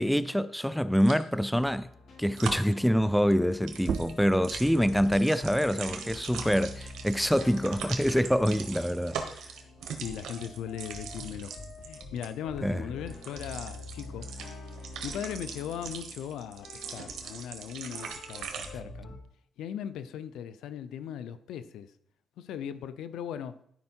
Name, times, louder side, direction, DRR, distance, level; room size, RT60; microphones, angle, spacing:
voice 1, 0.0-1.9 2.2-9.2 12.6-12.8, equal, ahead, 0.4 m, -26 dB
sound 1, 1.0-1.2 2.4-2.7 3.5-12.3 13.1-18.7, right 6 dB, 75° right, 1.5 m, -41 dB
sound 2, 1.5-19.2, left 2 dB, 55° left, 2.2 m, -46 dB
sound 3, 3.8-9.0 9.4-11.2, right 7 dB, 55° right, 0.4 m, -42 dB
voice 2, 10.0-11.5 11.8-14.3 15.0-19.1 19.6-21.9 22.4-23.6, left 9 dB, 85° left, 0.6 m, -38 dB
12.0 x 5.2 x 4.5 m
cardioid pair, 90°, 0 cm